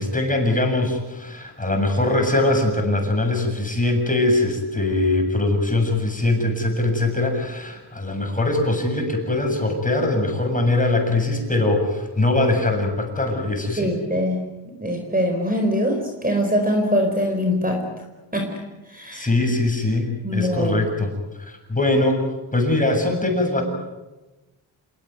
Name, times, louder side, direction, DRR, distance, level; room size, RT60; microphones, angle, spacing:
voice 1, 0.0-13.9 19.1-21.1 21.4-22.2 22.5-23.6, left 2 dB, 15° left, 3 dB, 7.3 m, -22 dB
voice 2, 13.8-14.4 14.8-17.8 18.3-18.5 18.9-19.3 20.2-20.8, equal, 20° right, 3 dB, 4.5 m, -22 dB
28.0 x 18.0 x 9.5 m, 1.1 s
cardioid pair, 95°, 47 cm